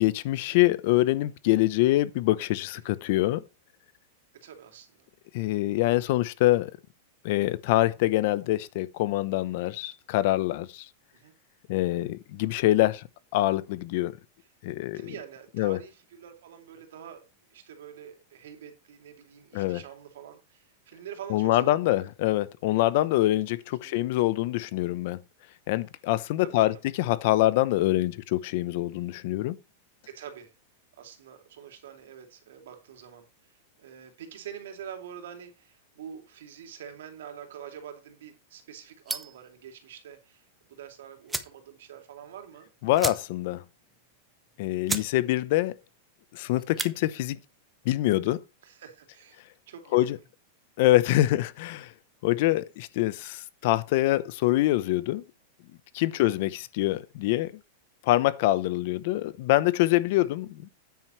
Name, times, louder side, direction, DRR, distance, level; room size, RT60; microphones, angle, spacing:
voice 1, 0.0-3.4 5.3-6.7 7.2-10.9 11.7-13.0 13.3-14.1 14.6-15.1 15.6-15.8 19.5-19.8 21.3-25.2 25.7-29.5 42.8-43.6 44.6-45.7 46.3-47.4 47.8-48.4 49.9-50.2 50.8-51.9 52.2-55.2 55.9-57.5 58.0-60.7, left 16 dB, 55° left, 0.7 m, -25 dB
voice 2, 4.3-5.1 11.1-11.3 14.9-22.1 23.8-24.3 26.4-26.8 30.1-30.5 30.9-42.7 48.6-49.4 49.7-50.2 56.1-56.4 60.1-60.3, right 8 dB, 80° right, 2.7 m, -46 dB
sound 1, 39.1-39.5 40.8-40.9 41.3-41.6 42.0-42.1 42.3-42.5 42.9-43.5 43.9-44.0 44.5-44.6 44.9-45.1 45.5-45.8 46.6-46.9, right 3 dB, 5° right, 0.8 m, -33 dB
9.4 x 9.0 x 3.2 m
supercardioid pair, 155°, 0 cm